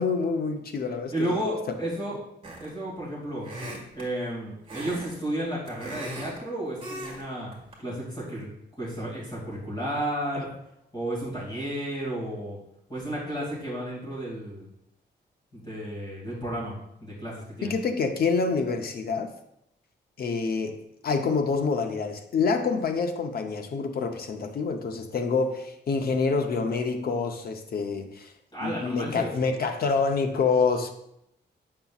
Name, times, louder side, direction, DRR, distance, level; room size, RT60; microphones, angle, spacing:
voice 1, 0.0-1.4 10.3-10.5 17.6-19.3 20.2-20.8 21.0-28.3 28.6-30.9, left 4 dB, 55° left, 5 dB, 0.7 m, -27 dB
voice 2, 1.1-2.2 2.6-3.5 3.9-7.5 7.8-8.5 8.8-10.5 10.9-12.6 12.9-14.7 15.5-17.8 28.5-29.3, right 1 dB, 25° left, -6 dB, 2.4 m, -32 dB
sound 1, 2.4-2.8 3.4-4.1 4.7-5.1 5.4-6.4 6.8-7.2 7.5-7.7, right 1 dB, 30° right, 1.5 m, -38 dB
8.0 x 5.6 x 2.4 m, 0.78 s
wide cardioid pair, 170°, 19 cm